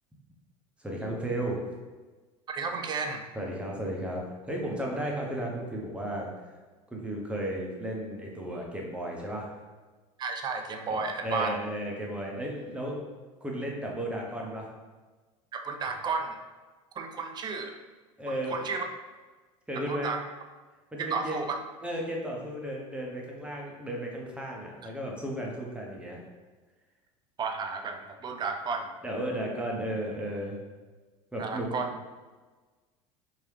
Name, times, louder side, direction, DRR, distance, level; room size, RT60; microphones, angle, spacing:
voice 1, 0.8-1.6 3.4-6.3 6.9-9.5 10.9-13.0 13.4-14.7 18.2-18.6 19.7-20.1 20.9-21.4 21.8-26.2 29.0-30.6 31.3-31.7, right 1 dB, 5° right, -2 dB, 0.8 m, -34 dB
voice 2, 2.5-3.2 10.2-11.5 15.5-16.4 17.0-17.8 18.3-18.9 19.7-20.2 21.0-21.6 27.4-28.9 31.4-31.9, right 4 dB, 25° right, 5 dB, 0.4 m, -32 dB
3.1 x 2.7 x 3.2 m, 1.3 s
figure-of-eight pair, 75°, 17 cm